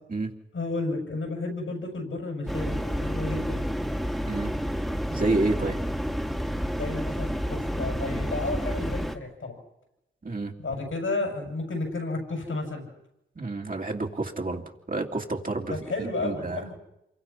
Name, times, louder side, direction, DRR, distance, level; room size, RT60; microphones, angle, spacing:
voice 1, 0.5-3.6 6.7-9.6 10.6-12.9 15.7-16.8, left 2 dB, 85° left, 1 dB, 6.5 m, -32 dB
sound 1, 2.5-9.2, equal, ahead, 1.8 m, -30 dB
voice 2, 5.1-5.8 10.2-10.5 13.4-14.6 14.9-15.8 16.2-16.6, right 2 dB, 45° right, 1 dB, 2.7 m, -29 dB
27.5 x 23.0 x 5.7 m, 0.87 s
wide cardioid pair, 65°, 21 cm